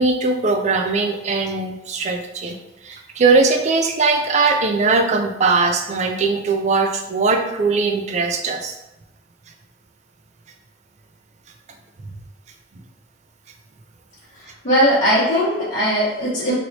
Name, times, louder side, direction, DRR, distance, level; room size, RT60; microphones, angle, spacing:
voice 1, 0.0-2.6 2.8-8.8, right 3 dB, 40° right, 4 dB, 0.4 m, -20 dB
voice 2, 14.6-16.5, equal, 45° left, -11 dB, 1.2 m, -18 dB
3.0 x 2.9 x 2.8 m, 0.94 s
head